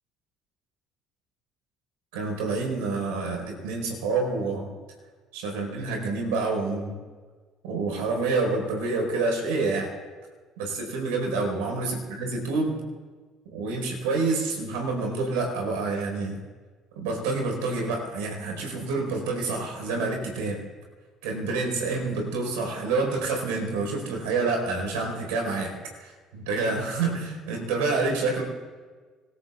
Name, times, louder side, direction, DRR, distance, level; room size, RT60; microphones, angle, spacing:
voice 1, 2.1-4.7 5.3-7.0 7.6-9.9 10.6-12.8 13.5-16.4 16.9-20.6 21.2-28.4, right 3 dB, 80° right, 1 dB, 4.5 m, -28 dB
26.0 x 20.5 x 2.4 m, 1.4 s
hypercardioid pair, 65°, 0 cm